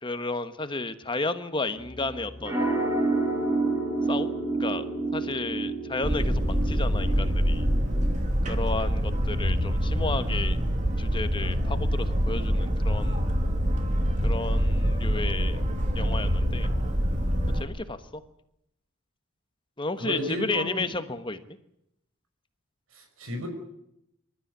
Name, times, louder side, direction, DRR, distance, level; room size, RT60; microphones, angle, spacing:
voice 1, 0.0-2.7 4.1-4.3 4.6-4.8 5.1-7.7 8.5-10.6 11.0-13.2 14.2-15.6 15.9-16.7 17.5-18.2 19.8-21.4, left 3 dB, 25° left, 10 dB, 1.3 m, -32 dB
sound 1, 1.8-8.1, right 3 dB, 15° right, 5.8 m, -29 dB
Boat Water vehicle, 6.0-17.6, equal, 35° right, 2.8 m, -25 dB
voice 2, 8.4-8.8 20.0-20.9 22.9-23.5, equal, 80° right, 4 dB, 5.8 m, -33 dB
26.5 x 13.0 x 9.6 m, 0.80 s
head